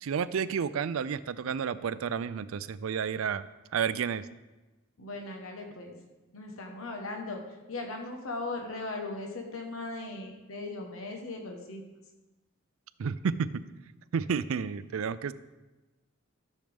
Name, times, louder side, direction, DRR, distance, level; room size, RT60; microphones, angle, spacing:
voice 1, 0.0-3.4 3.7-4.3 13.0-13.6 14.1-15.3, right 6 dB, 80° right, 15 dB, 0.4 m, -31 dB
voice 2, 5.0-6.0 6.3-11.9, left 2 dB, 85° left, 2 dB, 1.1 m, -38 dB
13.5 x 6.6 x 3.5 m, 1.1 s
head